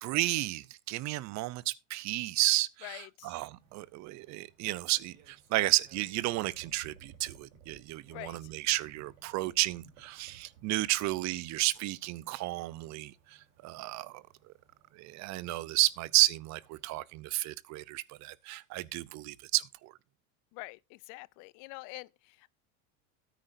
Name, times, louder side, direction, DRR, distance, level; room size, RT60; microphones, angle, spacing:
voice 1, 0.0-14.5 14.9-19.9, right 18 dB, 45° right, 0.6 m, -32 dB
voice 2, 2.8-3.3 8.1-8.5 20.5-22.5, left 24 dB, 55° left, 0.4 m, -46 dB
sound 1, 3.6-17.0, right 7 dB, 85° right, 3.5 m, -60 dB
13.0 x 9.2 x 2.6 m
supercardioid pair, 105°, 39 cm